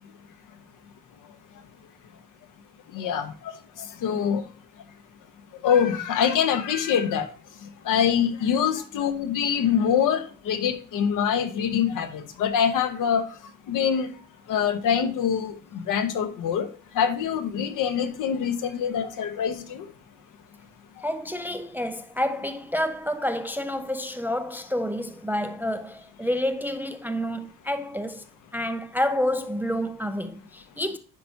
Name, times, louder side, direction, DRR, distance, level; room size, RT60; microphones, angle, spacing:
voice 1, 2.9-3.3 3.8-4.4 5.6-7.3 7.8-13.2 13.7-14.1 14.5-16.7 16.9-19.8, left 8 dB, 80° left, 1.1 m, -24 dB
voice 2, 21.0-28.2 28.5-31.0, left 1 dB, 5° right, 0.3 m, -29 dB
10.0 x 4.6 x 2.7 m
cardioid pair, 165°, 31 cm